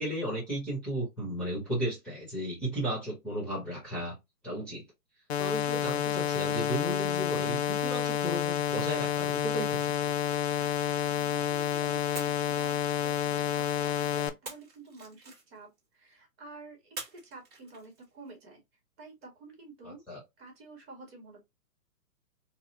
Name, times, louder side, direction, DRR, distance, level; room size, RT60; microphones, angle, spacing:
voice 1, 0.0-4.2 4.4-4.8 5.4-10.1 19.8-20.2, right 1 dB, ahead, 1.2 m, -34 dB
sound 1, 5.3-14.3, left 10 dB, 45° left, 0.5 m, -29 dB
sound 2, 9.4-11.6 12.1-13.7 14.4-15.9 16.9-18.3, right 3 dB, 20° right, 1.9 m, -48 dB
voice 2, 10.6-18.6 19.0-20.0 20.4-21.4, right 3 dB, 40° right, 1.9 m, -50 dB
4.1 x 2.3 x 2.6 m
hypercardioid pair, 140°, 47 cm